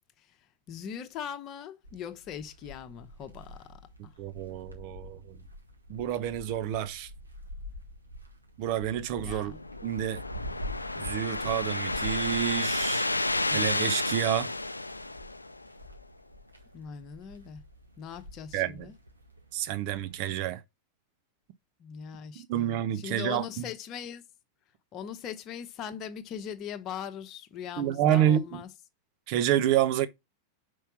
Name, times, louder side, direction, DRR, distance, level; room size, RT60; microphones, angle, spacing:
voice 1, 0.7-4.1 9.2-9.6 16.7-17.6 18.0-18.9 21.8-24.2 24.9-28.7, left 8 dB, 35° left, 1.0 m, -40 dB
sound 1, 1.8-20.4, left 1 dB, 85° right, 1.7 m, -46 dB
voice 2, 4.2-5.4 5.9-7.1 8.6-9.5 9.8-10.2 11.0-13.1 13.5-14.5 18.5-18.9 19.5-20.6 22.5-23.6 27.8-28.6 29.3-30.1, right 11 dB, 45° right, 0.8 m, -28 dB
sound 2, 9.2-15.8, left 2 dB, 85° left, 0.4 m, -31 dB
5.8 x 4.7 x 6.0 m
figure-of-eight pair, 90°, 0 cm